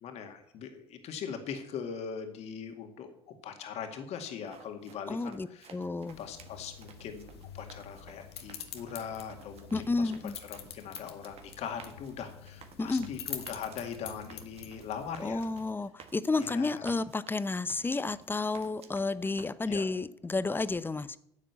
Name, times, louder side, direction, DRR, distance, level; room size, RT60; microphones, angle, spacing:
voice 1, 0.0-5.8 6.2-10.1 10.5-15.5 16.4-17.0 19.7-19.9, left 7 dB, 55° left, 2.0 m, -41 dB
sound 1, 4.3-19.5, right 7 dB, 50° right, 1.6 m, -55 dB
voice 2, 5.1-6.2 9.7-10.4 12.8-13.1 15.2-21.2, left 3 dB, 15° left, 0.7 m, -31 dB
sound 2, 6.1-15.7, left 9 dB, 80° left, 1.2 m, -46 dB
10.0 x 7.4 x 8.2 m
hypercardioid pair, 65°, 13 cm